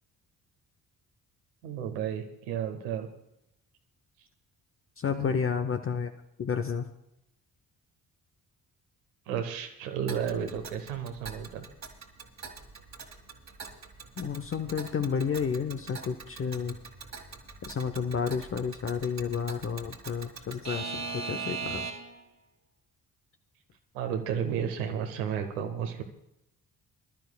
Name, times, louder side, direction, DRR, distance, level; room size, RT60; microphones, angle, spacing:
voice 1, 1.6-3.1 5.1-5.3 9.3-11.6 23.9-26.0, right 8 dB, 75° right, 5 dB, 1.3 m, -32 dB
voice 2, 5.0-6.1 6.4-6.9 14.2-16.8 17.7-21.9, left 6 dB, 30° left, 7 dB, 0.8 m, -31 dB
Alarm / Clock, 10.1-22.2, right 5 dB, 35° right, 1.9 m, -41 dB
23.0 x 12.5 x 2.3 m, 0.84 s
figure-of-eight pair, 40°, 44 cm